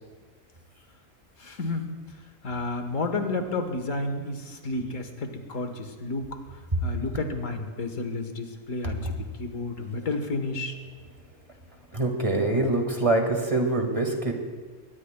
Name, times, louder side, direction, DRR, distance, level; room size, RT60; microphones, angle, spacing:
voice 1, 1.4-1.9 2.4-6.3 6.8-10.8, left 2 dB, 75° left, 6 dB, 1.6 m, -31 dB
voice 2, 11.9-14.3, right 2 dB, 25° right, 2 dB, 1.8 m, -24 dB
22.0 x 19.0 x 2.2 m, 1.4 s
omnidirectional pair, 1.4 m